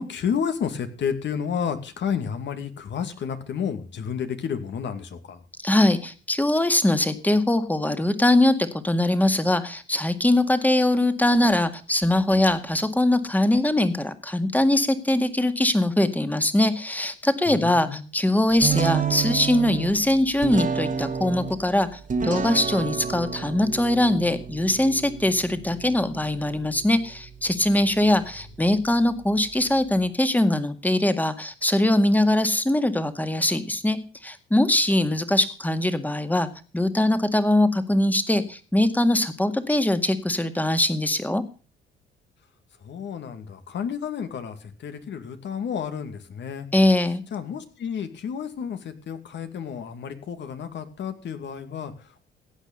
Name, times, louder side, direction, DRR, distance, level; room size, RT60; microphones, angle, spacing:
voice 1, 0.0-5.4 17.5-18.0 42.8-46.7 47.3-52.2, left 7 dB, 65° left, 8 dB, 2.4 m, -31 dB
voice 2, 5.6-36.5 36.7-41.4 46.7-47.2, left 1 dB, 10° left, 10 dB, 1.9 m, -22 dB
sound 1, 18.6-30.1, right 6 dB, 40° right, 1.7 m, -31 dB
16.0 x 9.0 x 5.4 m, 0.37 s
cardioid pair, 90°, 20 cm